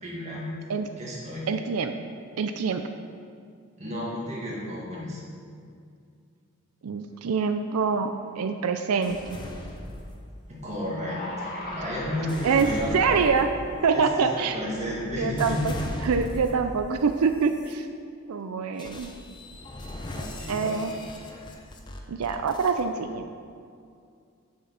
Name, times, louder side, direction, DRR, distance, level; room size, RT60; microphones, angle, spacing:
voice 1, 0.0-0.6 1.0-1.5 3.8-5.2 10.5-11.2 11.7-13.2 13.9-15.8 20.0-21.0, left 1 dB, 30° right, -5 dB, 2.1 m, -32 dB
voice 2, 1.5-1.9 2.4-2.8 6.8-9.4 12.4-13.5 13.8-14.6 15.2-15.7 16.0-17.9 18.3-19.1 20.5-20.9 22.1-23.3, right 5 dB, 90° right, 7 dB, 0.5 m, -25 dB
sound 1, 9.0-10.6 11.3-16.8 17.4-17.7 18.8-22.8, left 1 dB, 20° left, 0.7 m, -39 dB
sound 2, 10.9-17.1, left 1 dB, 40° left, 2.1 m, -41 dB
7.5 x 5.9 x 7.3 m, 2.3 s
head